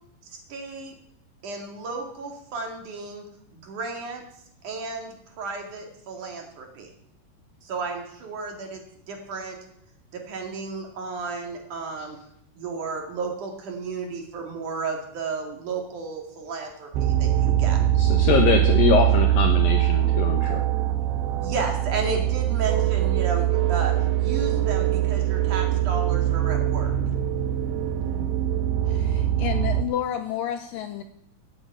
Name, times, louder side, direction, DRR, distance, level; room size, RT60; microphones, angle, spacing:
voice 1, 0.3-0.9 1.4-3.2 3.5-4.2 4.6-6.9 7.6-8.8 9.1-9.6 10.1-12.2 12.6-17.8 21.4-26.9, right 4 dB, 50° right, 2 dB, 3.4 m, -33 dB
sound 1, 16.9-29.8, right 12 dB, 85° right, 3.3 m, -22 dB
voice 2, 18.0-20.6, left 6 dB, 65° left, 3 dB, 2.6 m, -23 dB
voice 3, 28.9-31.0, left 10 dB, 85° left, 8 dB, 2.0 m, -30 dB
16.0 x 8.2 x 8.8 m, 0.74 s
omnidirectional pair, 4.9 m